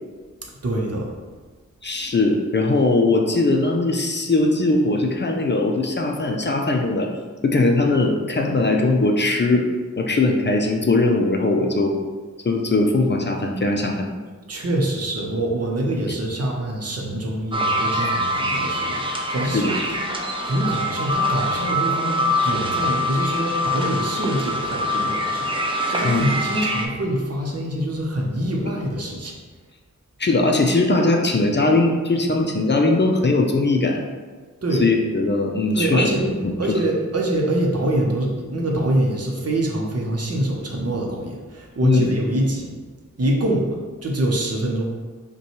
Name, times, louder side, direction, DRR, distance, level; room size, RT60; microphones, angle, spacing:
voice 1, 0.6-1.1 14.5-29.3 34.6-34.8 35.7-36.2 36.6-42.7 43.2-43.7 44.0-44.8, right 1 dB, 55° right, -1 dB, 0.8 m, -25 dB
voice 2, 1.8-7.1 7.4-9.7 10.0-12.0 12.4-14.1 17.9-18.1 19.5-19.7 26.0-26.3 30.2-34.0 34.8-36.1 36.4-36.8 41.8-42.2, left 2 dB, 40° left, 2 dB, 0.4 m, -20 dB
sound 1, 17.5-26.9, equal, 20° right, 0.5 m, -24 dB
5.3 x 2.3 x 3.0 m, 1.4 s
wide cardioid pair, 75°, 29 cm